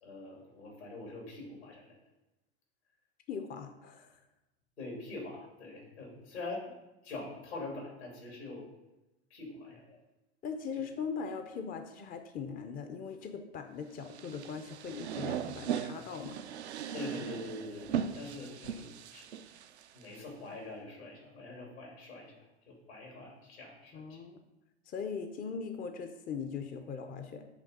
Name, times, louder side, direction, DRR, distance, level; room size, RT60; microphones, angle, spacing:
voice 1, 0.0-2.0 4.8-6.7 7.0-8.7 9.3-10.0 16.9-19.3 19.9-22.3 22.7-24.2, left 2 dB, 80° left, -1 dB, 2.8 m, -44 dB
voice 2, 3.3-4.2 10.4-16.4 23.9-24.4 24.9-27.4, left 6 dB, 25° left, 7 dB, 0.6 m, -40 dB
sound 1, 14.1-20.2, right 9 dB, 85° right, 0.5 m, -38 dB
8.3 x 3.4 x 6.5 m, 1.0 s
hypercardioid pair, 85°, 32 cm